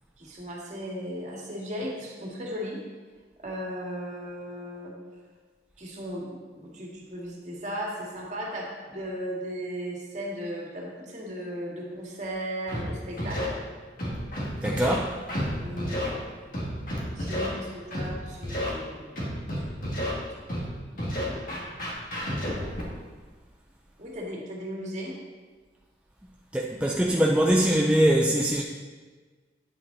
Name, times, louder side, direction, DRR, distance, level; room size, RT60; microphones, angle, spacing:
voice 1, 0.2-2.8 3.4-4.9 5.8-13.5 15.6-16.5 17.2-19.2 19.6-20.5 20.9-21.6 24.0-25.2, equal, 40° right, -2 dB, 1.9 m, -37 dB
Scratching (performance technique), 12.7-12.8 13.2-13.4 14.0-15.0 15.3-15.5 15.8-16.1 16.5-17.5 17.9-18.1 18.4-18.7 19.2-20.1 20.5-20.6 21.0-22.8, equal, 50° left, 2.0 m, -30 dB
voice 2, 14.6-15.1 26.5-28.6, right 1 dB, 5° right, -1 dB, 0.4 m, -22 dB
9.2 x 8.0 x 4.0 m, 1.4 s
head